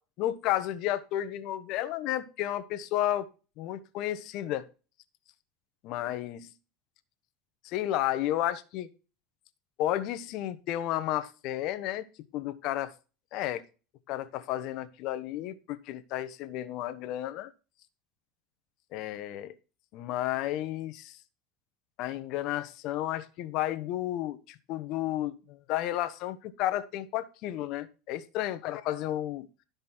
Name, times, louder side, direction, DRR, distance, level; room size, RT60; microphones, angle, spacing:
voice 1, 0.2-3.3 3.6-4.7 5.8-6.5 7.6-8.9 9.8-12.1 12.3-12.9 13.3-13.6 14.1-17.5 18.9-19.5 19.9-21.1 22.0-29.5, left 13 dB, 55° left, 1.1 m, -32 dB
12.5 x 5.3 x 4.3 m
supercardioid pair, 120°, 0 cm